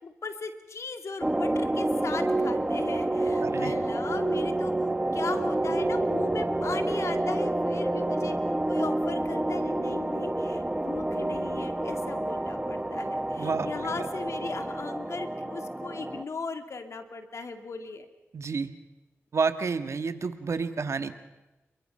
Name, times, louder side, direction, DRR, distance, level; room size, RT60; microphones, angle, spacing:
voice 1, 0.0-8.4 8.7-18.1, left 4 dB, 70° left, 8 dB, 2.2 m, -38 dB
sound 1, 1.2-16.2, right 1 dB, 15° right, 1.3 m, -28 dB
voice 2, 3.4-3.7 13.4-14.1 18.3-18.7 19.3-21.1, right 5 dB, 70° right, 10 dB, 1.7 m, -30 dB
29.0 x 23.0 x 5.6 m, 1.0 s
cardioid pair, 55°, 5 cm